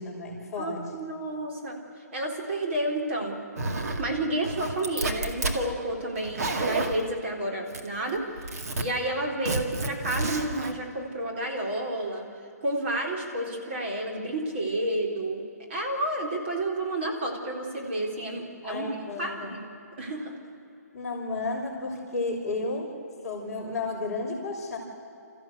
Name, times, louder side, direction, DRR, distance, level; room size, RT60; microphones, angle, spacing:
voice 1, 0.0-0.8 18.6-19.6 20.9-22.9 23.2-24.8, left 3 dB, 5° left, -9 dB, 5.2 m, -32 dB
voice 2, 0.6-1.8 2.1-3.4 4.0-8.3 8.6-12.3 12.6-15.4 15.7-19.6 20.0-20.4, right 1 dB, 40° right, 0 dB, 4.0 m, -30 dB
Zipper (clothing), 3.6-4.1 4.4-5.6 6.2-7.0 7.7-8.1 8.4-8.8 9.4-10.7, right 3 dB, 60° right, 2.3 m, -30 dB
28.0 x 14.5 x 8.2 m, 2.7 s
hypercardioid pair, 165°, 9 cm